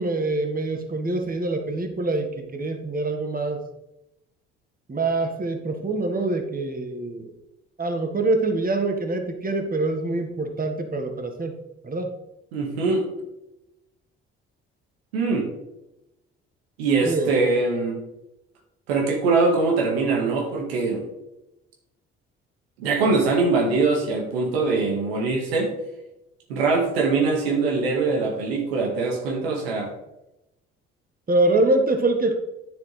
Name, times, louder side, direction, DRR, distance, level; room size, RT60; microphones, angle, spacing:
voice 1, 0.0-3.6 4.9-7.3 7.8-11.5 11.8-12.1 17.0-17.3 31.3-32.3, right 2 dB, 30° right, 4 dB, 1.6 m, -25 dB
voice 2, 12.5-13.1 15.1-15.5 16.8-18.0 18.9-21.0 22.8-25.7 26.5-29.9, right 3 dB, 90° right, 0 dB, 1.7 m, -22 dB
9.8 x 6.9 x 3.3 m, 0.91 s
hypercardioid pair, 50°, 30 cm